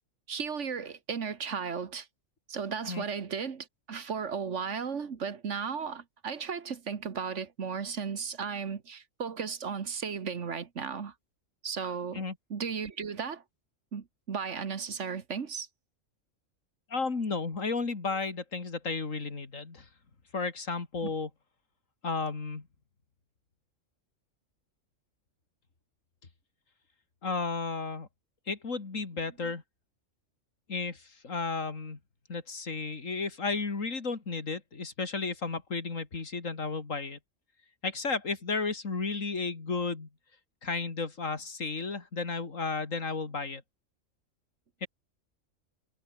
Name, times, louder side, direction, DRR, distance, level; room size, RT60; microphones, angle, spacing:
voice 1, 0.3-2.1 2.5-11.1 11.6-12.2 12.5-13.4 13.9-15.7 21.0-21.1 29.4-29.5, right 6 dB, 65° right, 1.7 m, -35 dB
voice 2, 16.9-19.9 20.3-21.3 22.0-22.7 27.2-28.1 28.5-29.6 30.7-32.0 32.3-37.2 37.8-40.1 40.6-43.6 44.8-44.9, left 4 dB, 80° left, 3.0 m, -33 dB
omnidirectional pair, 1.3 m